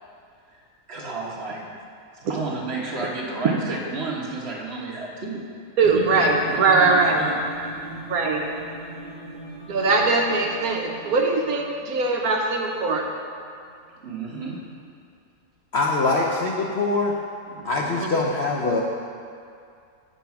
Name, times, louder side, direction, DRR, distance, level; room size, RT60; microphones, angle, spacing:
voice 1, 0.9-1.6 2.3-5.4 5.8-8.0 14.0-14.6 17.5-18.0, right 3 dB, 45° right, -3 dB, 1.3 m, -32 dB
sound 1, 5.8-13.5, equal, 25° left, 0.7 m, -39 dB
voice 2, 5.8-7.2 8.1-8.4 9.7-13.0 18.0-18.1, right 3 dB, 65° right, 1 dB, 1.1 m, -21 dB
voice 3, 15.7-17.1 17.6-18.8, left 3 dB, 60° left, -2 dB, 0.7 m, -23 dB
8.1 x 5.3 x 5.8 m, 2.4 s
omnidirectional pair, 1.8 m